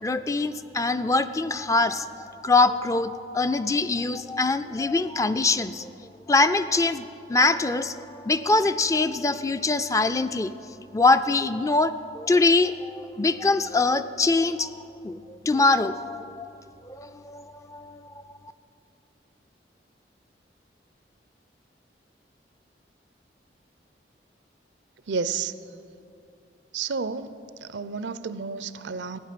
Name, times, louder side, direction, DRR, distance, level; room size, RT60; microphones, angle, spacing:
voice 1, 0.0-5.9 6.3-10.5 10.9-14.7 15.0-16.5 16.9-18.2, left 3 dB, 20° left, 11 dB, 0.3 m, -23 dB
voice 2, 25.1-25.5 26.7-27.3 27.6-29.2, right 5 dB, 85° right, 14 dB, 0.6 m, -31 dB
15.5 x 9.7 x 7.5 m, 2.7 s
head